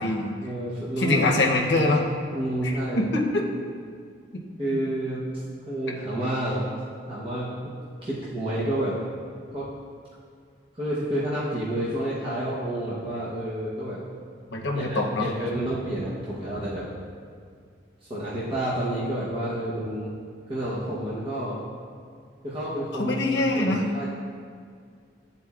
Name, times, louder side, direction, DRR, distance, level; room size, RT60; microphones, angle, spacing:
voice 1, 0.4-1.3 2.3-3.0 4.6-5.2 5.7-6.7 7.1-7.7 8.0-9.0 9.5-9.7 10.7-14.0 14.7-16.9 18.0-20.1 20.5-21.6 22.4-24.1, right 1 dB, 30° right, -9 dB, 0.8 m, -29 dB
voice 2, 1.0-2.0 2.6-3.4 14.5-15.3 22.9-23.8, left 2 dB, 65° left, 0 dB, 0.7 m, -24 dB
10.0 x 4.1 x 2.4 m, 2.1 s
head